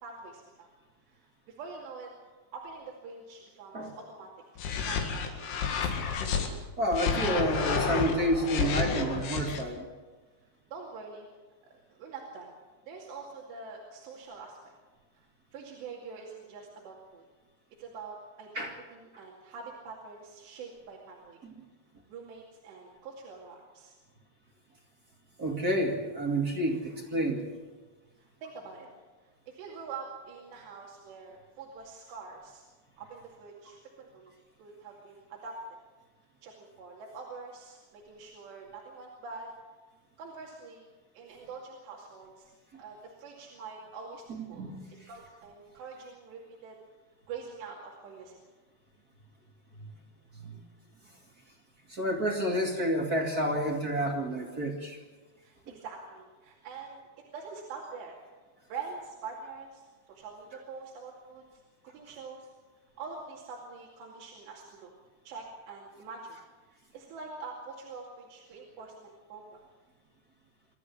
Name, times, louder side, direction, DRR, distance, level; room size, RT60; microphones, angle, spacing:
voice 1, 0.0-0.7 1.1-2.1 2.5-4.3 4.8-5.6 10.7-11.3 11.9-12.5 12.8-14.6 15.1-15.3 15.5-17.2 17.8-21.4 22.1-23.9 28.2-28.9 29.5-32.6 33.0-35.8 36.4-39.5 40.2-40.9 41.1-42.5 42.8-46.8 47.3-48.4 55.4-57.0 57.3-58.2 58.7-62.5 63.0-64.9 65.3-66.4 66.9-69.6, right 4 dB, 85° right, -2 dB, 4.6 m, -45 dB
sound 1, 4.6-6.5 6.9-9.6, left 5 dB, 70° left, 4.0 m, -30 dB
voice 2, 6.8-9.9 18.5-18.7 19.1-19.2 21.4-21.6 25.4-27.5 42.7-42.8 44.3-44.8 49.8-49.9 50.3-50.6 51.9-55.0, right 1 dB, 30° right, 1 dB, 2.0 m, -30 dB
25.5 x 14.0 x 8.5 m, 1.3 s
omnidirectional pair, 4.9 m